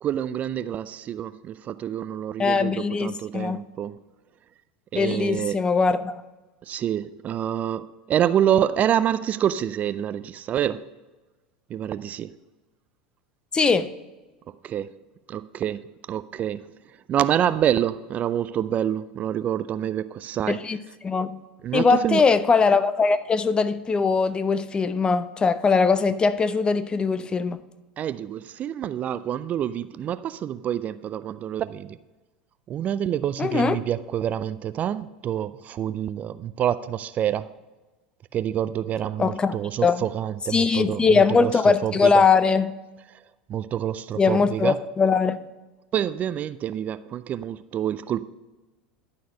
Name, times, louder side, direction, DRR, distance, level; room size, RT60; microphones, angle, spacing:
voice 1, 0.0-4.0 4.9-5.6 6.7-10.8 11.7-12.3 14.5-14.9 15.3-16.6 17.1-20.6 21.6-22.2 28.0-32.0 32.7-37.5 38.3-41.5 41.8-42.2 43.5-44.8 45.9-48.2, right 10 dB, 35° right, 0.3 m, -27 dB
voice 2, 2.4-3.6 5.0-6.2 13.5-13.9 20.5-21.4 21.7-27.6 33.4-33.8 39.2-39.5 39.8-40.0 40.5-42.7 44.2-45.4, left 4 dB, 20° left, 0.5 m, -21 dB
11.5 x 4.2 x 6.4 m
hypercardioid pair, 90°, 4 cm